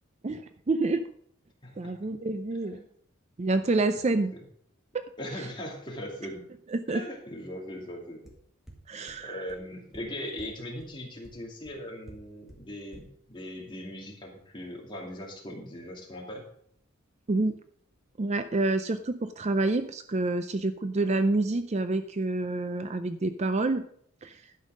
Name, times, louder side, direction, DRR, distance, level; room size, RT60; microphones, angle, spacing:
voice 1, 0.2-1.1 1.8-2.8 3.4-4.3 4.9-5.1 6.7-7.0 8.9-9.5 17.3-17.6 18.2-23.8 24.2-24.4, right 2 dB, 30° right, 10 dB, 0.4 m, -28 dB
voice 2, 1.6-1.9 2.5-2.8 4.0-4.2 5.2-6.4 6.9-8.3 9.2-16.5, left 1 dB, 20° left, -1 dB, 2.4 m, -40 dB
sound 1, 8.3-8.4 8.7-8.8 9.1-9.2 9.5-9.6 9.9-10.0 10.4-10.5 10.8-10.9 11.2-11.3 11.6-11.7 12.1-12.2 12.5-12.6 12.9-13.0, equal, ahead, 1.9 m, -48 dB
12.0 x 5.6 x 6.3 m, 0.66 s
head